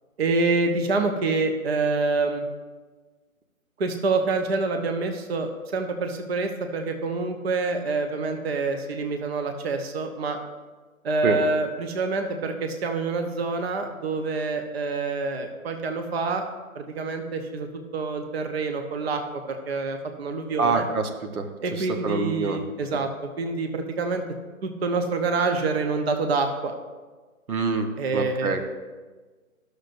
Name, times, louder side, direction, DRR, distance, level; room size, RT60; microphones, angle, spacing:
voice 1, 0.2-2.4 3.8-10.4 11.0-16.5 16.8-17.7 17.9-19.2 19.5-20.9 21.6-23.1 23.4-24.2 24.6-26.7 28.0-28.6, right 3 dB, 45° right, 5 dB, 0.7 m, -26 dB
voice 2, 20.6-22.6 22.9-23.0 27.5-28.6, right 4 dB, 80° right, 6 dB, 1.1 m, -26 dB
13.5 x 6.5 x 2.6 m, 1.3 s
hypercardioid pair, 155°, 43 cm